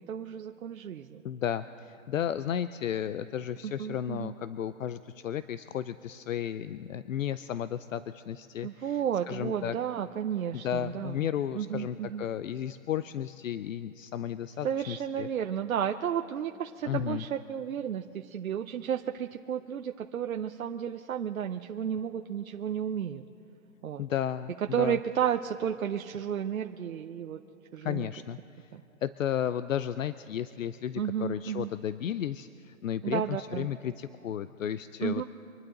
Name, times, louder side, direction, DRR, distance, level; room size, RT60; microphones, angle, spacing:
voice 1, 0.0-1.2 3.6-4.3 8.6-11.3 11.5-12.2 14.6-23.2 23.8-24.0 24.7-27.4 27.7-28.1 28.7-28.8 31.0-31.7 33.0-33.7 35.0-35.2, right 9 dB, 85° right, 5 dB, 0.8 m, -32 dB
voice 2, 1.2-9.0 9.3-9.8 10.5-15.3 16.8-17.2 24.0-25.0 27.8-28.7 29.0-35.2, left 10 dB, 70° left, 14 dB, 0.6 m, -33 dB
26.0 x 11.5 x 3.9 m, 3.0 s
hypercardioid pair, 165°, 40 cm